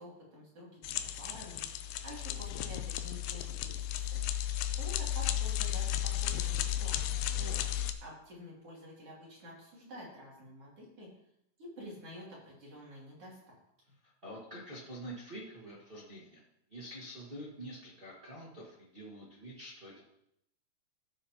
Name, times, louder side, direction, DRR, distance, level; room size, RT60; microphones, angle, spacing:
voice 1, 0.0-4.2 4.8-7.1 8.0-11.1 11.6-13.6, equal, 45° right, -5 dB, 3.4 m, -49 dB
sound 1, 0.8-7.9, left 11 dB, 90° left, 2.3 m, -34 dB
voice 2, 7.3-7.8 14.0-16.4 16.7-20.0, right 1 dB, 30° right, -5 dB, 1.0 m, -47 dB
14.0 x 7.3 x 2.9 m, 0.77 s
omnidirectional pair, 3.9 m